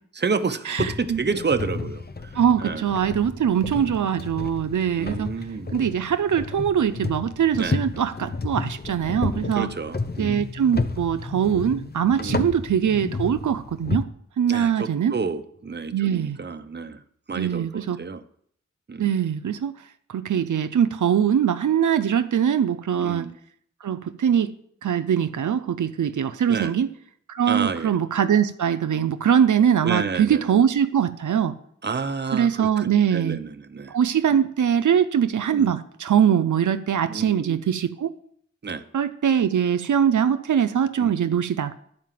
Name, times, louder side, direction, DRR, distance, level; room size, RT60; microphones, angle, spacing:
voice 1, 0.1-2.3 2.6-2.9 3.8-4.1 5.0-5.8 7.6-7.8 9.5-10.4 12.2-12.6 14.5-17.0 17.3-18.2 18.9-19.1 23.0-23.3 26.5-26.8 27.5-27.9 29.8-30.6 31.8-34.0 34.3-34.4 35.5-35.8 37.1-37.6 38.6-38.8 41.0-41.4, right 5 dB, 35° right, 9 dB, 0.7 m, -30 dB
voice 2, 0.7-1.2 2.4-5.3 5.7-9.7 10.2-14.1 14.4-15.2 15.9-16.4 17.4-18.0 19.0-19.7 20.1-23.3 23.8-24.5 24.8-26.9 27.3-31.5 32.3-33.4 33.9-38.1 38.9-41.7, right 8 dB, 85° right, 11 dB, 0.5 m, -22 dB
sound 1, 0.8-14.0, left 3 dB, 35° left, 0.7 m, -32 dB
11.0 x 4.8 x 7.5 m, 0.66 s
wide cardioid pair, 70°, 29 cm